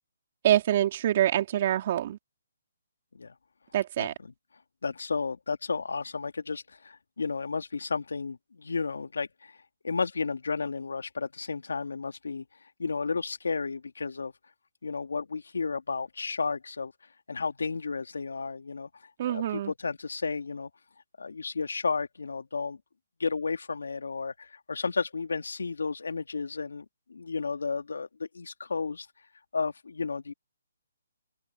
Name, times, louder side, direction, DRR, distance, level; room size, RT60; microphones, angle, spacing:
voice 1, 0.4-2.2 3.7-4.1 19.2-19.7, right 12 dB, 40° right, 3.4 m, -25 dB
voice 2, 4.0-4.3 4.8-9.5 9.8-12.4 12.8-14.3 14.8-16.9 17.3-18.9 19.2-20.7 21.2-22.8 23.2-26.8 27.1-29.1 29.5-30.3, left 4 dB, 90° left, 2.7 m, -32 dB
open air
hypercardioid pair, 160°, 0 cm